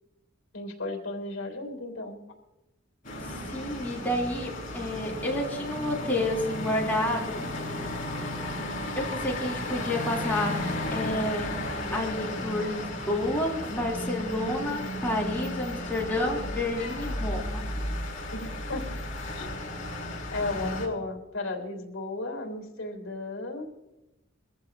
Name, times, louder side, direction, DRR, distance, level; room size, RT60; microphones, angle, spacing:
voice 1, 0.5-2.2 18.3-18.8 19.3-19.9 20.3-23.7, left 2 dB, 65° left, 3 dB, 3.2 m, -34 dB
sound 1, 3.0-20.9, left 1 dB, 40° left, 6.3 m, -34 dB
voice 2, 3.2-7.4 9.0-10.6 10.9-11.5 11.9-17.7, left 1 dB, 10° left, -3 dB, 3.7 m, -30 dB
23.5 x 14.5 x 2.9 m, 0.95 s
head